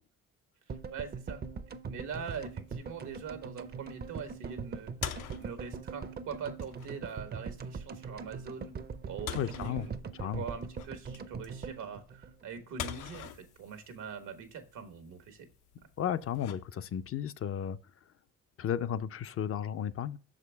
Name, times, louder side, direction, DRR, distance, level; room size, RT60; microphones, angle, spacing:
sound 1, 0.7-12.9 13.2-13.3 13.4-13.5, right 5 dB, 35° right, 0.5 m, -42 dB
voice 1, 0.7-1.4 1.9-8.7 9.1-9.9 10.2-15.5, right 6 dB, 85° right, 1.3 m, -43 dB
sound 2, 2.1-17.2, left 9 dB, 85° left, 0.7 m, -47 dB
voice 2, 9.3-9.9 10.1-10.4 16.0-17.8 18.6-20.2, left 9 dB, 50° left, 0.5 m, -34 dB
6.2 x 5.0 x 3.4 m
cardioid pair, 90°, 30 cm